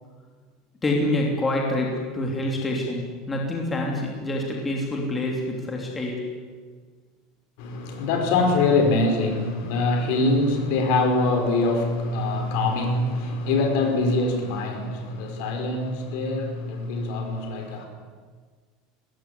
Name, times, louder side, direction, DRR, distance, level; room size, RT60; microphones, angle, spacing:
voice 1, 0.8-6.2, left 1 dB, 10° left, 3.0 m, -26 dB
voice 2, 7.6-17.9, left 2 dB, 55° left, 5.3 m, -24 dB
22.5 x 20.0 x 10.0 m
cardioid pair, 180°, 0 cm